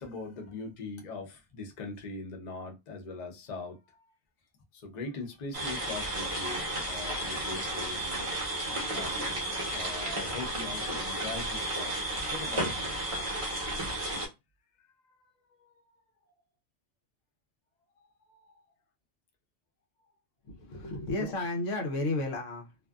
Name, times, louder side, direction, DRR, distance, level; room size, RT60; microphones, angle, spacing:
voice 1, 0.0-4.1 4.7-8.3 8.9-13.0 14.8-15.9 18.0-18.6 21.2-21.3, left 3 dB, 45° left, 0.7 m, -42 dB
sound 1, 5.5-14.3, right 1 dB, 30° right, 0.7 m, -33 dB
voice 2, 20.4-22.8, left 2 dB, 75° left, 1.0 m, -33 dB
2.5 x 2.4 x 2.2 m
omnidirectional pair, 1.3 m